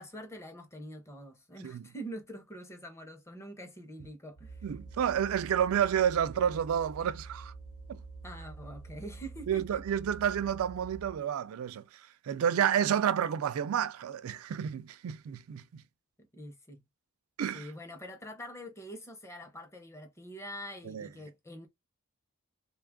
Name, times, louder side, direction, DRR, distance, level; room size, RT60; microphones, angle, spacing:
voice 1, 0.0-4.6 8.2-9.8 16.3-16.8 17.5-21.7, equal, 15° left, 0.6 m, -45 dB
sound 1, 4.4-11.2, right 4 dB, 85° left, 1.1 m, -47 dB
voice 2, 4.6-7.5 7.9-8.0 9.5-15.8 17.4-17.7 20.8-21.1, right 9 dB, 75° right, 0.3 m, -30 dB
3.3 x 2.3 x 3.5 m
head